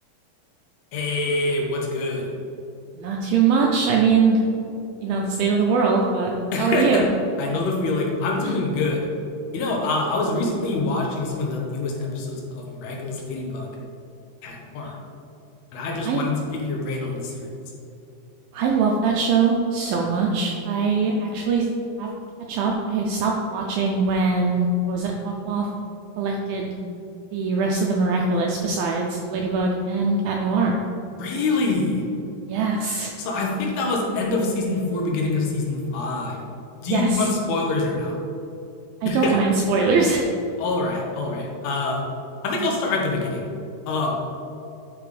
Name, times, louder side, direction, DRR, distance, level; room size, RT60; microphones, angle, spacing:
voice 1, 0.9-2.3 6.5-7.0 7.4-9.1 9.5-13.7 14.4-14.9 15.7-17.5 31.2-32.0 33.2-36.4 36.8-38.2 39.1-39.4 40.6-42.0 42.4-43.5 43.9-44.2, left 2 dB, 75° left, -1 dB, 3.0 m, -25 dB
voice 2, 3.0-4.4 5.0-6.3 6.6-7.0 16.0-16.3 18.5-21.7 22.0-22.1 22.5-25.7 26.2-26.7 27.3-30.8 32.5-33.1 36.9-37.3 39.0-40.3, right 4 dB, 80° right, 0 dB, 2.1 m, -22 dB
10.5 x 5.1 x 3.3 m, 2.7 s
omnidirectional pair, 4.8 m